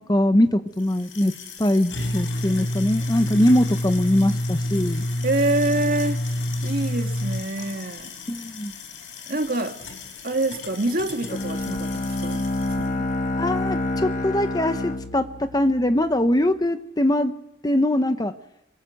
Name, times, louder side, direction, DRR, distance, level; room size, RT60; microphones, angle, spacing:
voice 1, 0.0-1.3 1.6-5.0 8.3-8.7 13.3-17.3 17.6-18.3, left 1 dB, 20° left, 9 dB, 0.9 m, -22 dB
sound 1, 0.8-12.8, left 1 dB, 75° left, 4.3 m, -30 dB
voice 2, 5.2-6.2 6.6-8.1 9.3-9.8 10.2-12.4 12.8-13.1, right 2 dB, 45° right, 4 dB, 2.2 m, -26 dB
Bowed string instrument, 11.3-16.3, left 2 dB, 40° left, 1.1 m, -28 dB
26.0 x 23.0 x 6.5 m, 0.90 s
head